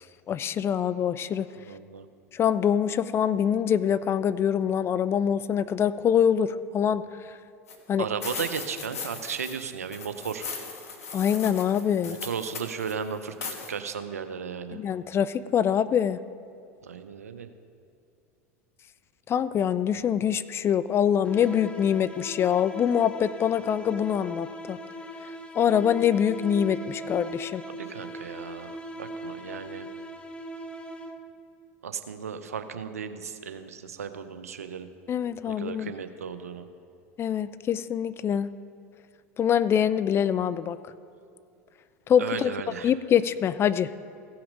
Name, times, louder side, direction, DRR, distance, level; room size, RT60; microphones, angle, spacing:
voice 1, 0.0-1.5 2.3-7.1 7.9-8.1 11.1-12.2 14.7-16.2 19.3-24.8 25.6-27.6 35.1-35.9 37.2-38.5 39.4-40.8 42.1-42.5 42.8-43.9, left 8 dB, 30° left, 15 dB, 0.4 m, -24 dB
voice 2, 1.6-2.1 8.0-10.5 12.0-14.8 16.8-17.5 27.7-29.9 31.8-34.9 35.5-36.7 42.2-42.9, right 6 dB, 85° right, 10 dB, 0.6 m, -35 dB
sound 1, 7.7-7.8 8.2-9.7 9.9-12.9 13.4-13.7, left 5 dB, 80° left, 1.2 m, -38 dB
sound 2, 21.2-31.5, right 1 dB, 15° left, 0.8 m, -40 dB
16.0 x 5.8 x 5.3 m, 2.5 s
hypercardioid pair, 85°, 8 cm